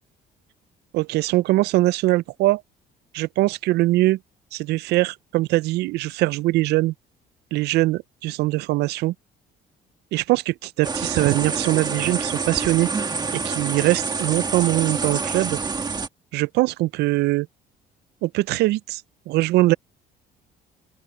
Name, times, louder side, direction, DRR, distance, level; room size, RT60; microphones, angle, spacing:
voice 1, 0.9-2.6 3.1-4.2 4.5-6.9 7.5-9.1 10.1-12.9 13.3-15.6 16.3-17.5 18.2-19.0 19.3-19.7, right 18 dB, 75° right, 0.4 m, -22 dB
sound 1, 10.8-16.1, right 4 dB, 25° right, 1.6 m, -27 dB
open air
cardioid pair, 110°, 17 cm